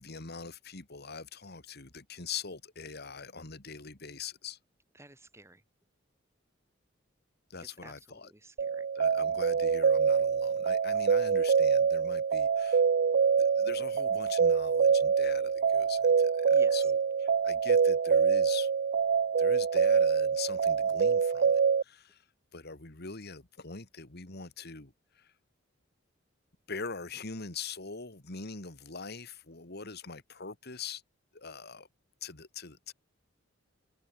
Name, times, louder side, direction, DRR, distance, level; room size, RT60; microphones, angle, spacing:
voice 1, 0.0-4.6 7.5-8.3 8.9-12.8 13.4-18.7 19.4-22.3 22.5-25.3 26.7-31.0 31.3-31.9 32.2-32.9, left 5 dB, 55° left, 2.6 m, -43 dB
voice 2, 4.9-5.6 7.6-8.9 16.5-16.9, right 2 dB, 15° right, 2.5 m, -53 dB
sound 1, 8.6-21.8, right 6 dB, 55° right, 0.4 m, -25 dB
head